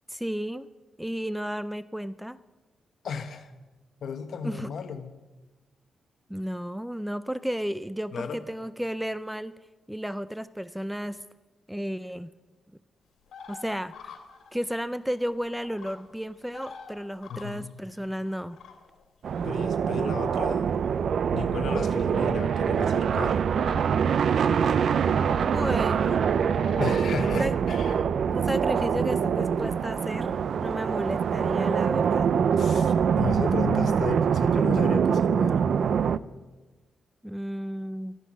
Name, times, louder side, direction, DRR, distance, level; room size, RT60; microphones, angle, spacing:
voice 1, 0.1-0.7 1.0-2.4 4.4-4.7 6.3-9.6 9.9-11.2 11.7-12.3 13.5-14.1 14.5-18.6 25.4-26.3 27.2-27.5 28.3-32.3 37.2-38.2, equal, 5° right, 15 dB, 0.4 m, -33 dB
voice 2, 3.0-3.5 4.0-5.1 8.1-8.4 17.3-17.7 19.4-20.7 21.3-23.4 26.8-28.1 32.6-35.6, left 6 dB, 65° left, 9 dB, 1.2 m, -34 dB
sound 1, 13.3-16.0 16.4-17.7 18.1-19.0 19.8-20.4 21.6-21.9 22.4-22.6 23.6-23.9 24.2-24.4 24.8-25.8 26.5-27.4, left 6 dB, 80° left, 2.4 m, -45 dB
sound 2, 19.2-36.2, right 7 dB, 65° right, 0.4 m, -24 dB
13.5 x 13.5 x 6.2 m, 1.2 s
cardioid pair, 120°, 0 cm